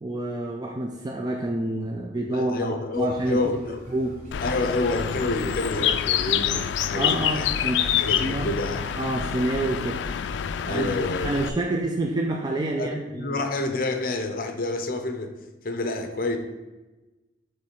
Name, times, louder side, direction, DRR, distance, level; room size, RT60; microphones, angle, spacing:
voice 1, 0.0-3.4 3.9-4.2 6.9-7.8 8.2-8.5 8.9-10.0 10.7-11.0 11.2-13.4, right 1 dB, 20° right, 1 dB, 0.4 m, -28 dB
voice 2, 2.3-3.8 4.4-7.5 8.0-8.8 10.7-11.3 12.8-15.4 15.6-16.4, left 2 dB, 50° left, 6 dB, 0.7 m, -28 dB
sound 1, 2.9-8.3, equal, 40° right, 1.6 m, -47 dB
Bird, 4.3-11.5, left 9 dB, 80° left, 0.3 m, -27 dB
7.0 x 3.2 x 4.6 m, 1.1 s
head